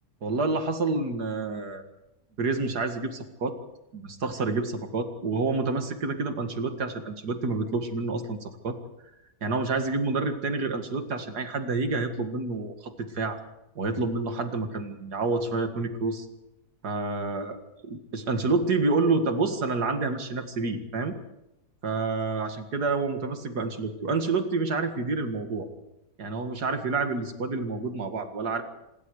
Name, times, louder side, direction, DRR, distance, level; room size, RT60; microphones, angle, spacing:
voice 1, 0.2-1.8 2.4-3.6 3.9-8.8 9.4-13.4 13.8-16.3 16.8-17.6 17.8-21.2 21.8-25.7 26.2-28.6, right 3 dB, 75° right, 7 dB, 2.5 m, -28 dB
26.5 x 21.0 x 4.9 m, 0.90 s
omnidirectional pair, 1.7 m